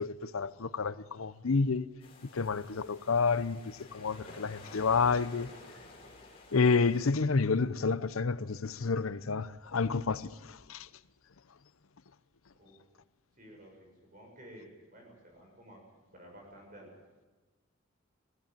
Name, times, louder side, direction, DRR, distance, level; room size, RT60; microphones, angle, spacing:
voice 1, 0.0-1.9 2.3-5.5 6.5-10.9, left 4 dB, 85° left, 0.7 m, -29 dB
sound 1, 2.0-7.1, left 2 dB, 30° left, 4.4 m, -52 dB
voice 2, 13.4-15.8 16.1-16.9, equal, 40° right, 7.1 m, -53 dB
21.0 x 15.5 x 9.2 m
head